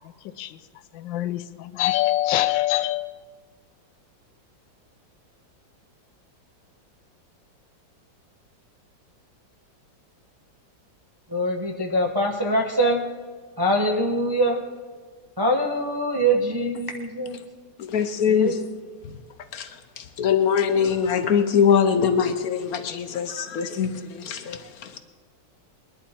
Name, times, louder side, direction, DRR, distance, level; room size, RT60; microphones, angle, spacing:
voice 1, 1.0-3.1, left 15 dB, 80° left, 1.3 m, -24 dB
voice 2, 11.3-13.0 13.6-14.6 15.4-17.4 18.3-18.6, right 1 dB, 25° right, 0.5 m, -23 dB
voice 3, 17.8-18.6 19.5-19.7 20.0-25.0, left 7 dB, 60° left, 1.0 m, -22 dB
21.0 x 11.0 x 4.3 m
omnidirectional pair, 2.0 m